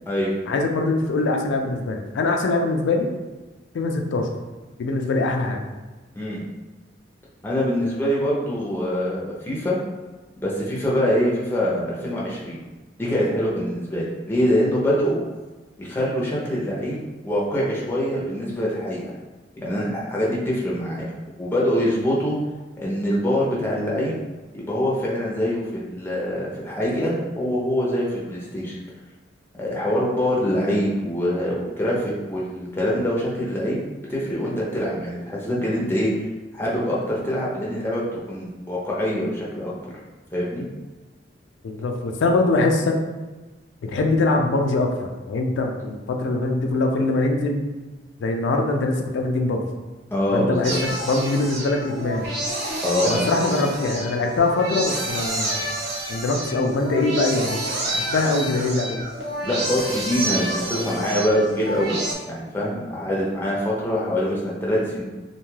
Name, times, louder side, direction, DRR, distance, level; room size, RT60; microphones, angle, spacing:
voice 1, 0.5-3.1 3.7-4.3 4.8-5.6 41.6-43.0 43.8-47.6 48.2-49.7 50.3-52.3 53.0-55.7 56.1-57.6 57.9-59.0, left 2 dB, 80° left, 3 dB, 0.3 m, -23 dB
voice 2, 7.4-9.8 10.4-12.6 13.0-15.2 15.8-17.0 17.2-19.0 19.6-21.1 21.4-22.4 22.8-24.2 24.5-28.8 29.6-33.8 34.1-36.1 36.5-39.8 40.3-40.6 50.1-50.8 52.8-53.3 59.4-62.0 62.3-65.0, equal, 10° left, -5 dB, 0.5 m, -24 dB
sound 1, 50.6-62.1, right 1 dB, 60° right, 0.6 m, -29 dB
2.6 x 2.3 x 3.1 m, 1.2 s
head